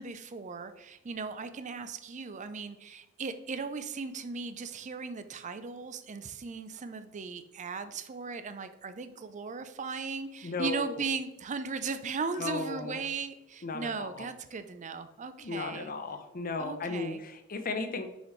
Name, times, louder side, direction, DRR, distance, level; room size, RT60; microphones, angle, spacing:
voice 1, 0.0-15.9 16.6-17.2, right 4 dB, 35° right, 11 dB, 0.5 m, -37 dB
voice 2, 10.4-11.0 12.4-13.0 13.6-14.3 15.4-18.1, left 3 dB, 45° left, 8 dB, 0.7 m, -35 dB
6.2 x 5.1 x 3.2 m, 0.98 s
head